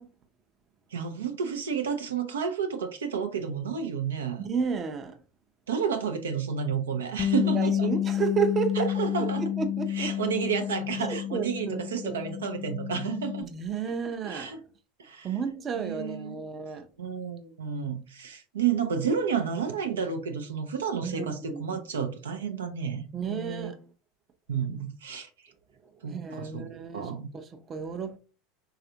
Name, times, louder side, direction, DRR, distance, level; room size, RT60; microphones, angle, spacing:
voice 1, 0.9-4.4 5.7-7.9 8.8-9.4 9.9-13.5 14.2-14.6 15.0-15.3 15.7-16.4 17.0-23.7 24.5-25.3 26.0-26.7 26.9-27.3, right 7 dB, 85° right, 0.4 m, -31 dB
voice 2, 4.4-5.2 7.4-8.9 9.2-9.3 9.6-10.1 11.0-12.3 13.4-14.5 15.2-16.8 21.0-21.6 23.1-23.8 26.1-28.2, right 6 dB, 35° right, 0.5 m, -32 dB
Bass guitar, 7.2-13.4, left 11 dB, 30° left, 0.3 m, -30 dB
3.4 x 2.4 x 2.7 m
hypercardioid pair, 90°, 0 cm